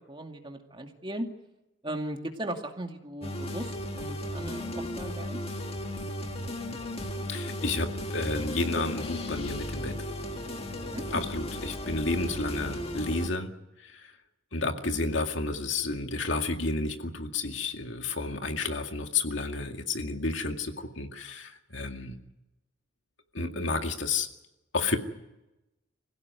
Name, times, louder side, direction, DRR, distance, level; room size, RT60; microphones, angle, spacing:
voice 1, 0.1-1.3 1.8-5.4 10.9-11.3 14.6-14.8, right 1 dB, 25° right, 3 dB, 2.4 m, -37 dB
sound 1, 3.2-13.3, left 1 dB, 30° left, 1.9 m, -35 dB
voice 2, 7.3-10.0 11.1-13.5 13.8-14.0 14.5-22.2 23.3-24.3 24.7-25.0, left 3 dB, 75° left, 4 dB, 2.2 m, -31 dB
26.0 x 16.5 x 9.6 m, 0.96 s
head